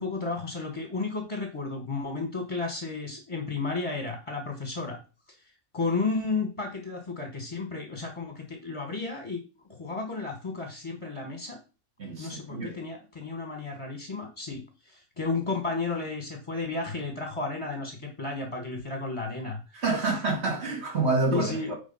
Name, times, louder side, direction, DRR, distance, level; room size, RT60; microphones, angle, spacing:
voice 1, 0.0-5.0 5.7-9.4 9.7-11.6 12.2-20.1 21.3-21.7, left 3 dB, 20° left, 1.2 m, -33 dB
voice 2, 12.0-12.8 19.7-21.7, right 3 dB, 45° right, 2.8 m, -28 dB
9.3 x 3.6 x 5.5 m
omnidirectional pair, 1.5 m